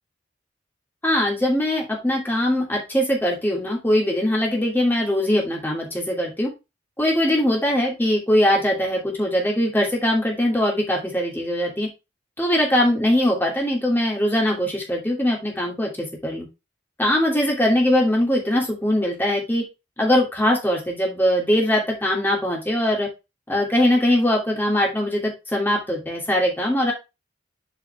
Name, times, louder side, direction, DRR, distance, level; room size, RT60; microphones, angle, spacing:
voice 1, 1.0-6.5 7.0-11.9 12.4-16.5 17.0-19.6 20.0-23.1 23.5-26.9, left 1 dB, 10° left, -2 dB, 2.8 m, -21 dB
8.2 x 4.8 x 3.5 m, 0.25 s
head